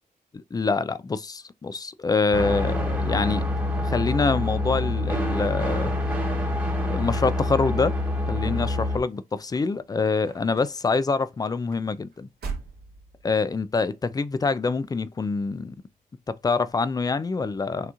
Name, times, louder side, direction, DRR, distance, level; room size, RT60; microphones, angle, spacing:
voice 1, 0.3-3.4 3.8-5.9 6.9-8.0 8.3-12.3 13.2-15.8 16.3-17.9, left 4 dB, 25° left, 0.3 m, -25 dB
sound 1, 2.3-9.0, left 1 dB, 10° right, 1.3 m, -26 dB
sound 2, 9.0-13.7 14.4-14.8 15.2-15.3, right 4 dB, 90° right, 1.9 m, -41 dB
6.1 x 2.9 x 2.4 m
wide cardioid pair, 120°, 16 cm